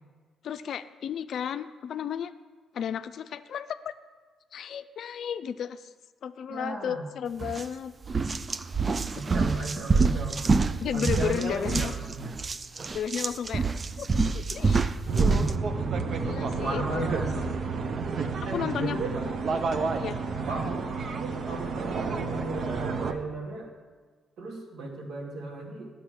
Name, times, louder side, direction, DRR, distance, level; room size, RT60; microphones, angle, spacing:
voice 1, 0.4-2.3 2.7-3.9 4.5-5.9 6.2-7.9 10.8-12.0 12.9-13.6 14.0-14.9 16.2-17.1 18.5-19.0 20.0-20.2, left 8 dB, 65° left, 12 dB, 0.4 m, -33 dB
voice 2, 6.5-7.1 9.1-10.4 10.9-12.4 15.1-15.6 16.6-17.4 18.5-20.0 20.5-23.7 24.4-25.9, right 2 dB, 75° right, 0 dB, 2.1 m, -35 dB
sound 1, 7.4-7.6 8.0-15.6, right 4 dB, 35° right, 0.4 m, -26 dB
sound 2, 15.1-23.1, right 4 dB, 55° right, 0.8 m, -30 dB
9.7 x 6.7 x 6.4 m, 1.5 s
cardioid pair, 90°, 0 cm